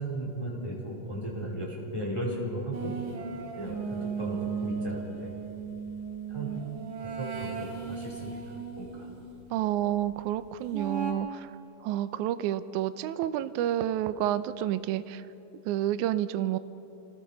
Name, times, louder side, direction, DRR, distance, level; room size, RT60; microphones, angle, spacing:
voice 1, 0.0-2.9 3.5-5.3 6.3-6.6 7.2-9.1, right 1 dB, 10° left, -4 dB, 4.5 m, -36 dB
sound 1, 2.7-9.3 10.7-11.1, right 5 dB, 45° right, 3.7 m, -36 dB
voice 2, 9.5-11.5 11.8-15.2 15.7-16.6, right 12 dB, 80° right, 12 dB, 1.9 m, -29 dB
28.0 x 19.0 x 5.2 m, 2.9 s
omnidirectional pair, 3.9 m